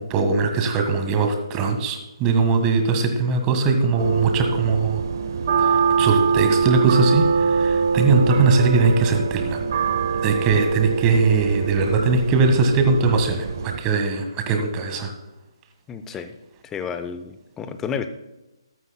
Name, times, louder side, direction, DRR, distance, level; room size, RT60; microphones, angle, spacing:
voice 1, 0.0-5.0 5.6-5.7 6.0-9.6 10.2-13.5 13.8-15.1, right 4 dB, 20° right, 5 dB, 1.6 m, -20 dB
sound 1, 4.0-13.8, right 5 dB, 45° right, 1.1 m, -23 dB
voice 2, 15.9-16.3 16.7-18.1, left 7 dB, 10° left, 9 dB, 0.7 m, -31 dB
15.0 x 13.0 x 2.2 m, 1.0 s
figure-of-eight pair, 140°, 3 cm